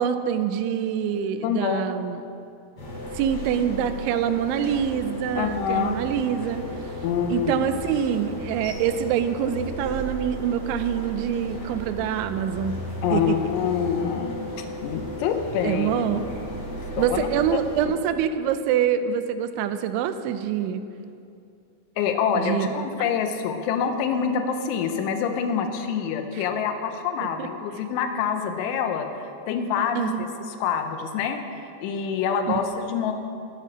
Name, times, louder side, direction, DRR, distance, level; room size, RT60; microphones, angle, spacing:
voice 1, 0.0-2.2 3.1-6.6 7.3-12.8 13.1-13.3 15.6-16.3 17.0-20.8 22.4-22.9 26.4-26.5 27.4-27.5 30.0-30.3 32.5-32.6, right 9 dB, 85° right, 10 dB, 3.0 m, -25 dB
voice 2, 1.4-1.8 5.3-6.0 7.0-7.6 13.0-16.3 17.0-17.2 22.0-29.1 29.5-30.3 30.6-31.4 31.8-33.1, left 7 dB, 90° left, 6 dB, 3.3 m, -26 dB
sound 1, 2.8-17.9, left 1 dB, 35° left, 3.6 m, -35 dB
18.5 x 7.7 x 6.3 m, 2.6 s
omnidirectional pair, 5.4 m